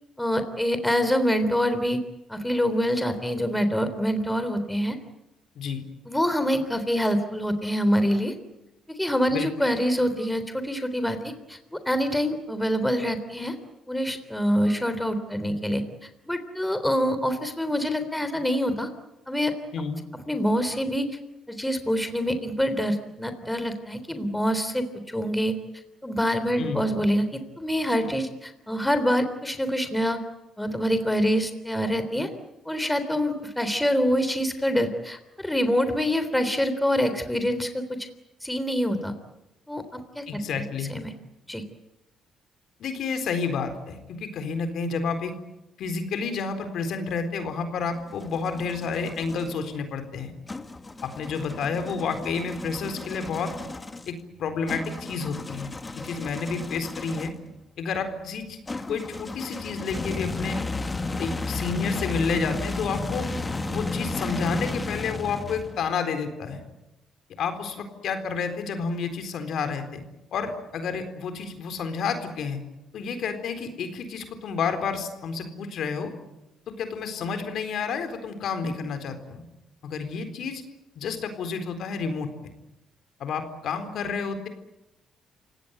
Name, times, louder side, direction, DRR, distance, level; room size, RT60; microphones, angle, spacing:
voice 1, 0.2-2.0 2.3-5.0 6.1-8.4 9.0-13.5 13.9-15.8 16.3-18.9 19.3-19.5 20.1-21.1 21.5-25.6 26.0-30.2 30.6-32.3 32.7-37.8 38.4-39.1 39.7-40.6 40.9-41.1 41.5-41.6, equal, 5° left, 9 dB, 3.5 m, -25 dB
voice 2, 40.3-40.9 42.8-45.3 45.8-50.3 51.0-53.5 54.1-54.2 54.4-55.7 56.0-57.3 57.8-58.6 58.9-60.6 61.2-63.3 63.7-66.6 67.4-70.0 70.3-72.6 72.9-76.1 76.7-79.4 79.8-80.6 81.0-82.3 83.2-84.5, left 5 dB, 70° left, 7 dB, 4.1 m, -30 dB
sound 1, 47.8-49.6 50.5-57.5 58.7-66.0, left 3 dB, 20° left, 1.9 m, -33 dB
28.5 x 17.5 x 9.5 m, 0.95 s
cardioid pair, 95°, 0 cm